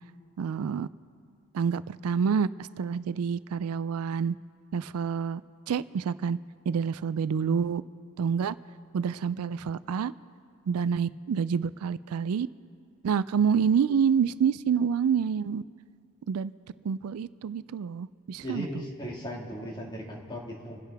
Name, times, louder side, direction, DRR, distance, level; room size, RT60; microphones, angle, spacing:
voice 1, 0.4-0.9 1.5-4.4 4.7-5.4 5.7-6.4 6.7-7.8 8.2-8.6 8.9-10.1 10.7-12.5 13.0-15.6 16.3-16.5 16.8-18.7, right 7 dB, 85° right, 17 dB, 0.4 m, -27 dB
voice 2, 18.4-20.8, equal, 20° left, -1 dB, 1.9 m, -37 dB
27.5 x 10.0 x 3.5 m, 2.3 s
head